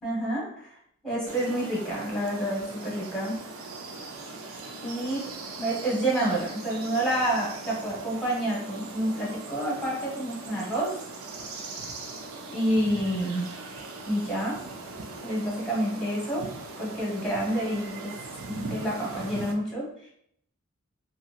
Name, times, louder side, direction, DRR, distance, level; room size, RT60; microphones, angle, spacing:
voice 1, 0.0-0.7 1.0-3.4 4.8-5.3 5.6-11.0 12.5-13.5 14.0-14.6 15.2-16.5 16.8-18.2 18.5-20.1, right 1 dB, 5° left, -5 dB, 1.0 m, -28 dB
sound 1, 1.3-19.5, right 3 dB, 80° right, 0.5 m, -40 dB
2.8 x 2.7 x 2.4 m, 0.68 s
head